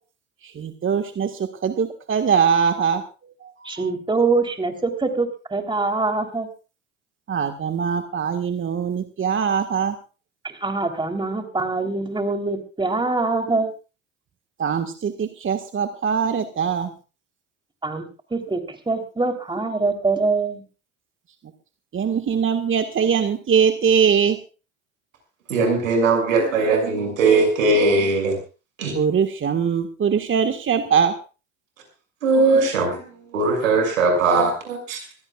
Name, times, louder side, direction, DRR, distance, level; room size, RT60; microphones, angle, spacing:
voice 1, 0.4-3.0 3.4-3.9 7.3-10.0 14.6-16.9 21.9-24.4 28.9-31.1, right 7 dB, 30° right, 6 dB, 1.7 m, -22 dB
voice 2, 3.6-6.5 10.4-13.7 17.8-20.6, right 3 dB, 10° right, 5 dB, 3.5 m, -24 dB
voice 3, 25.5-28.4 28.8-28.9 32.2-33.0 33.3-35.0, right 3 dB, 85° right, 3 dB, 6.6 m, -19 dB
24.5 x 17.0 x 2.4 m, 0.34 s
hypercardioid pair, 70°, 39 cm